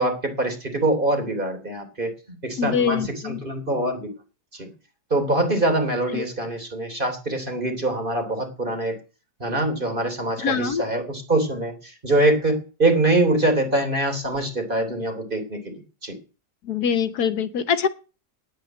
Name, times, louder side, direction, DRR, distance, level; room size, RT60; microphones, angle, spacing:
voice 1, 0.0-3.0 3.2-4.0 4.5-4.7 5.1-9.0 9.4-15.7 16.0-16.1, right 2 dB, 30° right, 5 dB, 3.4 m, -24 dB
voice 2, 2.6-3.4 6.1-6.2 10.4-10.9 16.6-17.9, left 7 dB, 75° left, 12 dB, 1.5 m, -24 dB
9.6 x 8.6 x 9.0 m, 0.33 s
omnidirectional pair, 1.7 m